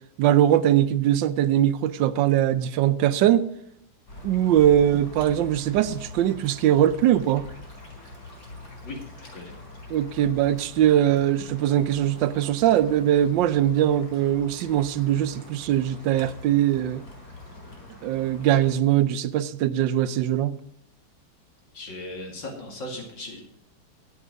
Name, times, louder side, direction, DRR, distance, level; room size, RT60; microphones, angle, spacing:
voice 1, 0.2-3.5 4.2-7.5 9.9-17.0 18.0-20.6, right 11 dB, 85° right, 1.3 m, -21 dB
sound 1, 4.1-18.7, left 3 dB, 55° left, 4.4 m, -43 dB
voice 2, 21.7-23.4, left 1 dB, 80° left, 3.2 m, -37 dB
11.0 x 8.8 x 5.2 m
omnidirectional pair, 2.0 m